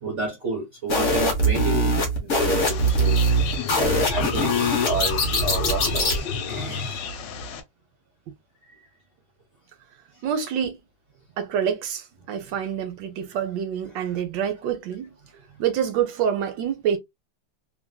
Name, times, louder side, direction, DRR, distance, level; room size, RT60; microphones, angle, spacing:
voice 1, 0.0-3.4 3.7-7.0, right 3 dB, 40° right, 1.3 m, -31 dB
sound 1, 0.9-6.2, right 1 dB, 50° left, 0.9 m, -22 dB
sound 2, 2.6-7.6, left 6 dB, 70° left, 1.3 m, -31 dB
voice 2, 10.2-10.8 11.4-15.1 15.6-17.0, right 8 dB, 70° right, 1.3 m, -26 dB
3.2 x 2.4 x 2.2 m
omnidirectional pair, 2.2 m